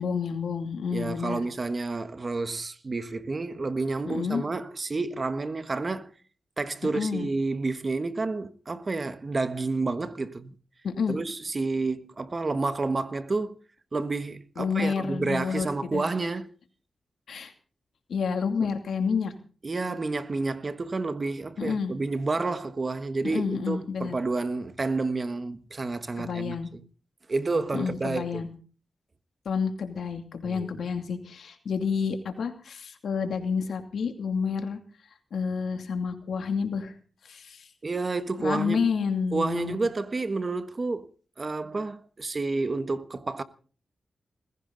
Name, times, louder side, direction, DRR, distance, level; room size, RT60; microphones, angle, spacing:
voice 1, 0.0-1.4 4.1-4.4 6.9-7.3 10.8-11.2 14.6-15.7 15.9-16.0 17.3-17.5 18.1-19.3 21.6-21.9 23.2-24.2 26.2-26.7 27.7-28.5 29.4-34.8 35.3-36.9 37.2-37.7 38.4-39.8, left 6 dB, 80° left, 2.5 m, -29 dB
voice 2, 0.9-6.1 6.6-10.5 11.1-13.6 13.9-16.5 19.6-26.8 27.3-28.5 30.4-30.7 37.8-38.9 39.3-41.1 41.4-43.4, right 3 dB, 40° right, 1.3 m, -30 dB
20.5 x 15.5 x 4.0 m
cardioid pair, 60°, 0 cm